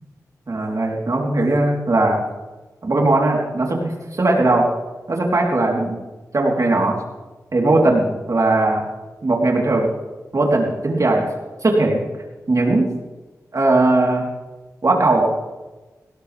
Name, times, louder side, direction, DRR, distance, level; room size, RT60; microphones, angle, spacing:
voice 1, 0.5-2.2 2.8-4.7 5.1-6.0 6.3-7.0 7.5-8.8 9.2-9.9 10.3-11.3 11.6-12.0 12.5-12.9 13.5-14.3 14.8-15.3, right 2 dB, 55° right, -1 dB, 3.7 m, -18 dB
19.0 x 17.5 x 3.5 m, 1.2 s
cardioid pair, 45°, 7 cm